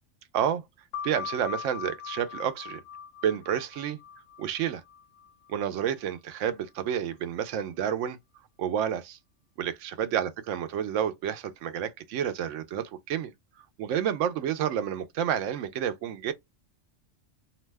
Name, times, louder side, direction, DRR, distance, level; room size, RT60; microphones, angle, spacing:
voice 1, 0.3-0.6 1.0-2.8 3.2-4.0 4.4-4.8 5.5-8.2 8.6-9.2 9.6-13.3 13.8-16.3, right 9 dB, 75° right, 0.9 m, -30 dB
sound 1, 0.9-6.1, left 7 dB, 65° left, 0.8 m, -41 dB
2.7 x 2.1 x 3.2 m
omnidirectional pair, 1.3 m